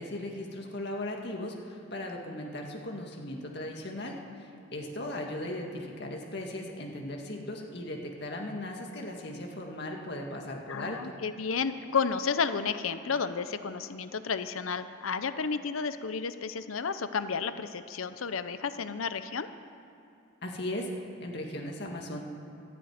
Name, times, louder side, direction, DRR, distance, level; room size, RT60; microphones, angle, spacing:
voice 1, 0.0-11.2 20.4-20.9 21.2-22.2, left 1 dB, 55° left, 1 dB, 2.0 m, -37 dB
voice 2, 10.7-19.5, left 5 dB, 90° left, 11 dB, 0.7 m, -32 dB
13.0 x 11.0 x 9.3 m, 2.7 s
head